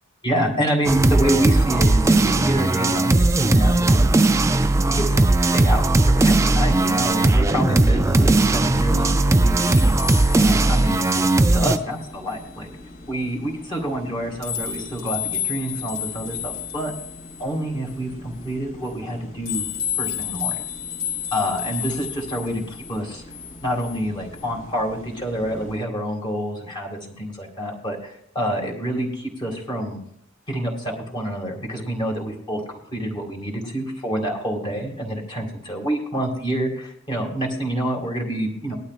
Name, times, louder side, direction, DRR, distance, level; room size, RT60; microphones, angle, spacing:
voice 1, 0.2-4.1 4.8-9.8 10.4-11.1 11.5-12.7 13.1-16.9 17.4-19.7 20.0-20.6 21.3-23.2 23.6-30.0 30.5-38.8, equal, 20° left, 0 dB, 2.1 m, -27 dB
sound 1, 0.8-11.8, right 2 dB, 15° right, 0.3 m, -18 dB
sound 2, 6.5-25.8, left 8 dB, 50° left, 2.3 m, -34 dB
19.0 x 11.5 x 2.5 m, 0.72 s
head